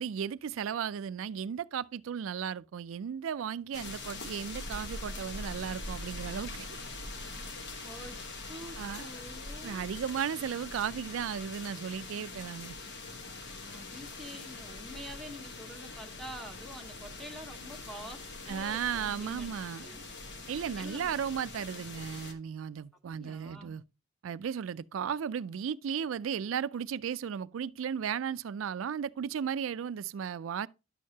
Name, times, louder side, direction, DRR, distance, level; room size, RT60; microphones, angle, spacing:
voice 1, 0.0-6.8 8.8-9.1 9.6-12.8 18.5-19.9 20.5-23.8 24.2-30.7, right 8 dB, 85° right, 0.4 m, -35 dB
sound 1, 3.7-22.3, left 2 dB, 60° left, 1.2 m, -43 dB
voice 2, 7.8-9.9 13.6-19.5 19.8-20.0 20.8-21.1 23.2-23.8, equal, ahead, 1.1 m, -47 dB
10.5 x 6.5 x 2.8 m
head